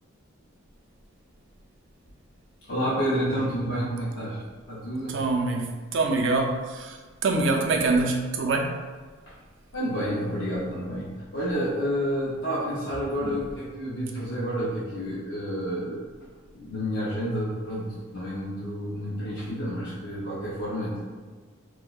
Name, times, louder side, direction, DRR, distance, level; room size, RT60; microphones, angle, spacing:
voice 1, 2.7-4.4 4.7-5.2 9.3-9.4 9.7-21.0, equal, 70° left, -8 dB, 0.6 m, -30 dB
voice 2, 5.1-8.7 13.2-13.3, right 3 dB, 60° right, 2 dB, 0.4 m, -25 dB
4.4 x 2.1 x 2.3 m, 1.4 s
head